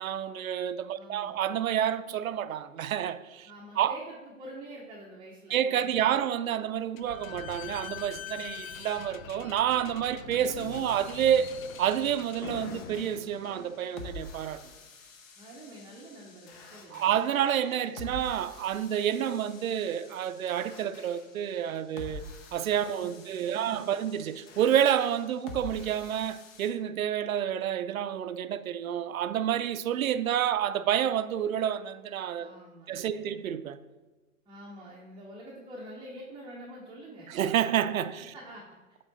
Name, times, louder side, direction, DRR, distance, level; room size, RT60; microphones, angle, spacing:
voice 1, 0.0-3.5 3.8-4.0 5.5-11.5 11.8-14.6 16.9-22.2 22.5-32.6 32.9-33.8 37.3-38.3, right 10 dB, 75° right, 0.5 m, -29 dB
voice 2, 0.9-1.3 3.4-6.0 15.4-17.1 22.8-23.1 23.4-24.0 32.4-33.4 34.5-37.4 38.3-38.6, equal, 10° right, 0.7 m, -46 dB
Slam / Squeak, 7.0-14.2, left 10 dB, 70° left, 0.5 m, -43 dB
sound 1, 10.6-26.7, left 3 dB, 45° left, 1.1 m, -48 dB
7.6 x 3.7 x 3.9 m
figure-of-eight pair, 105°, 42 cm